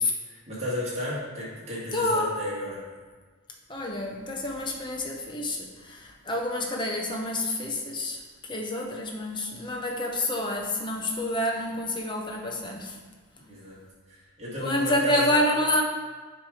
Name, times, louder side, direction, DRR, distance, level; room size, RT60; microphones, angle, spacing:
voice 1, 0.2-2.8 13.5-13.8 14.1-15.4, left 1 dB, 30° right, -7 dB, 1.7 m, -34 dB
voice 2, 1.9-2.4 3.7-13.0 14.6-15.8, left 1 dB, 20° left, 0 dB, 0.7 m, -28 dB
7.2 x 3.1 x 4.9 m, 1.4 s
head